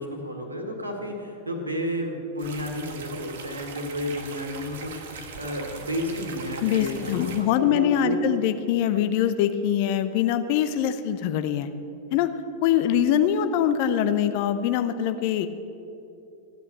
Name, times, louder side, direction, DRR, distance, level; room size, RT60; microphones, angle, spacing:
voice 1, 0.0-8.2, equal, 80° right, 3 dB, 1.8 m, -32 dB
sound 1, 2.4-7.4, right 5 dB, 55° right, 1.5 m, -40 dB
voice 2, 6.6-11.7 12.1-12.3 12.6-15.5, left 9 dB, 45° left, 11 dB, 0.7 m, -23 dB
15.0 x 9.4 x 6.8 m, 2.7 s
figure-of-eight pair, 90°, 0 cm